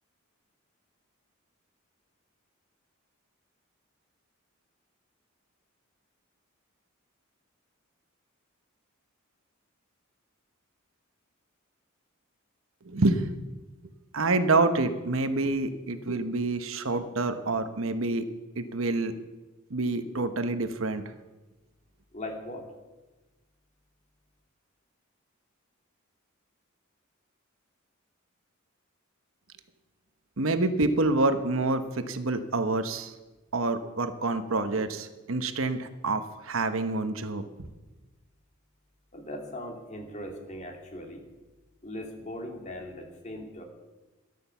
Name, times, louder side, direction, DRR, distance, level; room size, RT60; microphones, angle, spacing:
voice 1, 12.8-13.3 14.1-18.3 18.6-19.1 19.7-21.0 30.4-33.1 33.5-37.4, right 2 dB, 70° right, 9 dB, 1.1 m, -27 dB
voice 2, 22.1-22.6 39.1-41.2 41.8-43.6, left 1 dB, 35° left, 2 dB, 2.6 m, -39 dB
13.5 x 11.5 x 7.0 m, 1.1 s
head